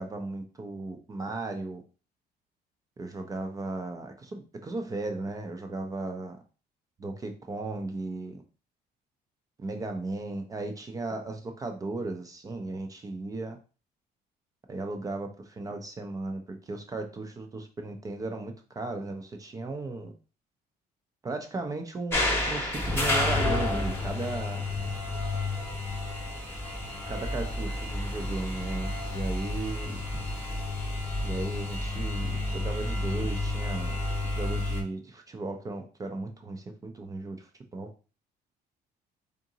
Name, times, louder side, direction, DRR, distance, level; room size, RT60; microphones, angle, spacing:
voice 1, 0.0-1.8 3.0-6.4 7.0-8.4 9.6-13.6 14.7-20.1 21.2-24.7 27.1-30.0 31.2-37.9, right 2 dB, 20° right, 5 dB, 0.4 m, -36 dB
sound 1, 22.1-34.8, left 2 dB, 15° left, 0.9 m, -30 dB
3.7 x 3.7 x 2.8 m, 0.35 s
cardioid pair, 165°, 17 cm